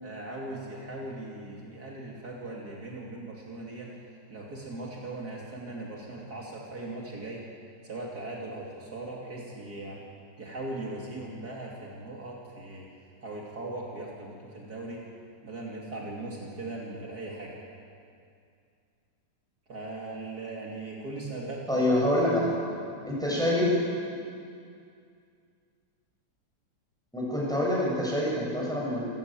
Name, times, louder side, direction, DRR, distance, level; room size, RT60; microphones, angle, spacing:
voice 1, 0.0-4.0 4.3-7.4 7.8-10.0 10.4-12.9 13.2-15.0 15.4-17.5 19.7-21.9 23.3-23.4, right 2 dB, 55° right, -3 dB, 3.2 m, -39 dB
voice 2, 21.7-22.6 23.1-23.7 27.1-29.1, left 1 dB, ahead, -5 dB, 7.3 m, -26 dB
27.5 x 14.5 x 9.0 m, 2.4 s
omnidirectional pair, 2.0 m